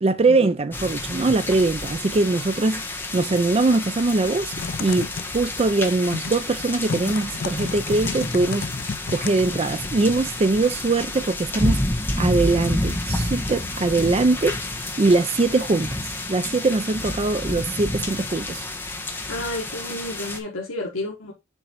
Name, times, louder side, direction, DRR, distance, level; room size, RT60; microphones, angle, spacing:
voice 1, 0.0-2.8 3.1-8.7 9.1-11.8 12.2-18.7, right 3 dB, 30° right, 0.4 m, -22 dB
sound 1, 0.7-20.4, left 1 dB, 10° left, 1.1 m, -29 dB
Typing, 4.5-9.9, left 5 dB, 45° left, 0.4 m, -33 dB
voice 2, 19.3-21.3, left 1 dB, 75° left, 1.5 m, -31 dB
7.1 x 3.9 x 4.5 m
head